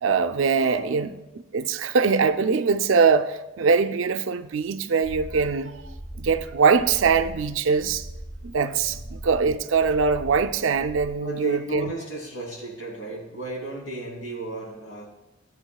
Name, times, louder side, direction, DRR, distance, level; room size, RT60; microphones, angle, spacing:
voice 1, 0.0-1.1 1.5-5.8 6.2-8.1 8.4-11.9, right 5 dB, 70° right, 0.4 m, -22 dB
voice 2, 0.5-0.9 8.9-9.0 11.2-15.1, right 2 dB, 65° left, 3.0 m, -34 dB
sound 1, 5.0-11.1, right 1 dB, 40° left, 1.2 m, -40 dB
14.5 x 7.9 x 2.3 m
head